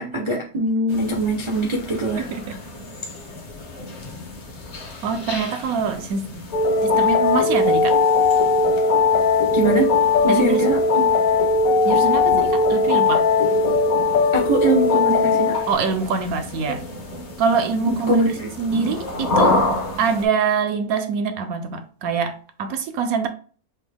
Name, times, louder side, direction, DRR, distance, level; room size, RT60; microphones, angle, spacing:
voice 1, 0.0-2.3 9.5-9.9 10.2-11.1 14.3-15.6 18.1-18.9, right 1 dB, 50° right, 0.3 m, -23 dB
sound 1, 0.9-20.3, left 2 dB, 40° left, 0.6 m, -31 dB
voice 2, 2.2-2.6 5.0-6.3 6.8-8.0 10.3-10.7 11.8-13.3 15.7-16.9 17.4-18.2 18.6-19.6 20.0-23.3, right 5 dB, 70° right, 1.0 m, -24 dB
sound 2, 6.5-15.7, left 4 dB, 70° left, 1.0 m, -18 dB
6.0 x 2.1 x 3.3 m
omnidirectional pair, 1.7 m